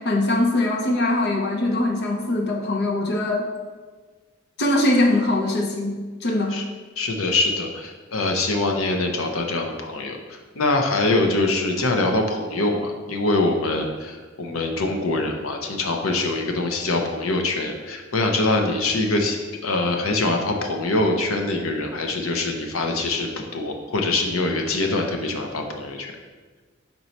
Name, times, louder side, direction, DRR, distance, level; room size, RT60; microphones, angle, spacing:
voice 1, 0.0-3.5 4.6-6.6, left 1 dB, 55° left, 1 dB, 0.6 m, -22 dB
voice 2, 7.0-19.4 19.6-26.1, left 2 dB, 90° left, 3 dB, 0.7 m, -24 dB
5.3 x 4.5 x 4.1 m, 1.4 s
head